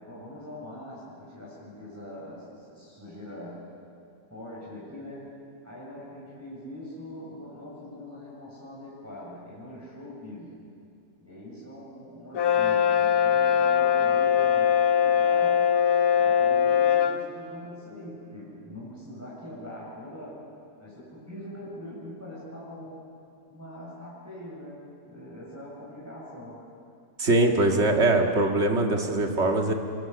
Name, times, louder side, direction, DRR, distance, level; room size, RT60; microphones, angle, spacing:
voice 1, 0.0-3.6 4.3-5.3 5.6-10.5 11.2-15.6 16.1-20.4 20.8-23.0 23.5-26.6, left 1 dB, 10° right, -8 dB, 7.1 m, -42 dB
Brass instrument, 12.3-17.2, left 8 dB, 85° left, 1.5 m, -21 dB
voice 2, 27.2-29.7, right 2 dB, 45° right, 2 dB, 2.1 m, -22 dB
25.5 x 23.0 x 6.9 m, 2.5 s
omnidirectional pair, 1.6 m